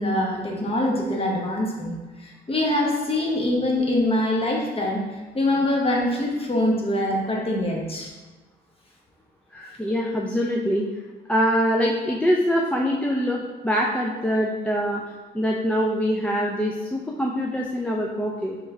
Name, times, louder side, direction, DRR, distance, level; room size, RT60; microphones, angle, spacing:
voice 1, 0.0-1.9 2.2-5.0 5.3-8.1, left 1 dB, 30° left, -1 dB, 0.9 m, -24 dB
voice 2, 9.5-10.8 11.3-15.0 15.3-18.6, equal, 5° left, -2 dB, 0.3 m, -24 dB
3.2 x 3.2 x 3.5 m, 1.2 s
cardioid pair, 90°, 20 cm